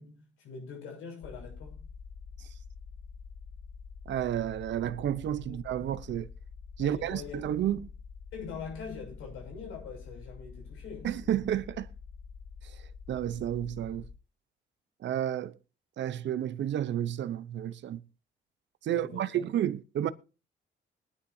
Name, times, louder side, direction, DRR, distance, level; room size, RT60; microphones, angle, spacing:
voice 1, 0.0-1.9 5.5-5.6 6.8-7.8 8.3-11.1 18.9-19.4, left 5 dB, 90° left, 6.4 m, -43 dB
sound 1, 1.2-14.2, left 5 dB, 45° left, 0.7 m, -47 dB
voice 2, 4.1-6.3 6.8-7.9 11.0-11.9 12.6-14.0 15.0-15.6 16.0-18.0 18.8-20.1, right 11 dB, 65° right, 0.8 m, -31 dB
21.0 x 9.9 x 2.7 m
cardioid pair, 90°, 20 cm